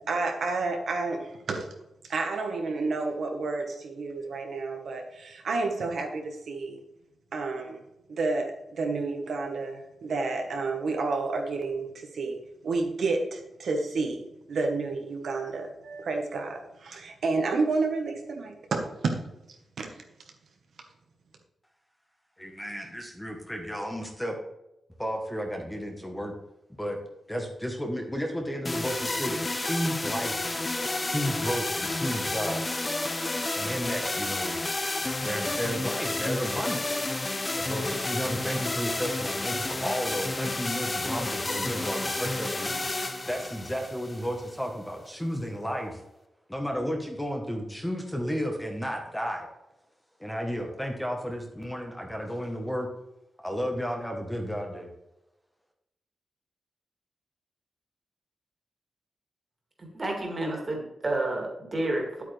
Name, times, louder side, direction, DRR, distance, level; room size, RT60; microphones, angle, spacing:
voice 1, 0.1-1.7 2.0-6.8 7.3-7.8 8.1-12.4 12.6-19.2 19.8-19.9, right 3 dB, 65° right, 3 dB, 1.2 m, -30 dB
voice 2, 22.4-24.4 25.0-26.3 26.8-27.0 27.3-30.4 31.0-32.7 33.5-34.6 35.2-37.1 37.6-43.0 43.3-46.0 46.5-49.5 50.2-52.9 53.4-54.9, equal, 5° left, 2 dB, 1.0 m, -33 dB
sound 1, 28.7-44.7, left 2 dB, 20° left, 0.7 m, -31 dB
voice 3, 59.8-62.2, right 2 dB, 30° right, 0 dB, 2.3 m, -30 dB
9.9 x 8.4 x 3.3 m, 0.91 s
wide cardioid pair, 165°, 0 cm